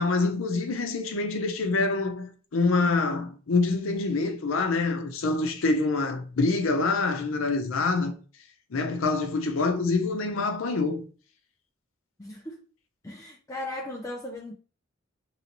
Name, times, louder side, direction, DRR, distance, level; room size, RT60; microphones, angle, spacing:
voice 1, 0.0-8.2 8.7-11.1, left 3 dB, 75° left, 0.6 m, -26 dB
voice 2, 12.2-12.6 13.0-14.5, left 1 dB, 15° left, 0.4 m, -37 dB
3.0 x 2.7 x 2.9 m
head